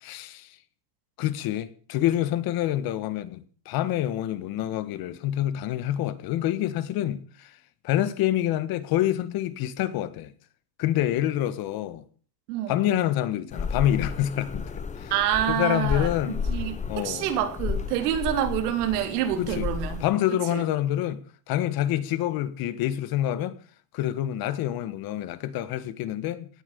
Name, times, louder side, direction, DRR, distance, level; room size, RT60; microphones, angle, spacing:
voice 1, 0.0-0.6 1.2-7.6 7.8-10.3 10.8-12.0 12.7-14.7 15.0-15.1 15.5-16.4 16.9-17.3 19.4-19.7 20.0-21.2 21.5-23.6 23.9-26.5, left 12 dB, 50° left, 1.7 m, -27 dB
voice 2, 12.5-12.9 15.1-20.0 20.5-20.6, right 10 dB, 90° right, 3.5 m, -27 dB
Night atmosphere Wind City, 13.5-20.1, left 5 dB, 15° left, 1.4 m, -33 dB
17.5 x 10.5 x 7.0 m
cardioid pair, 140°, 45 cm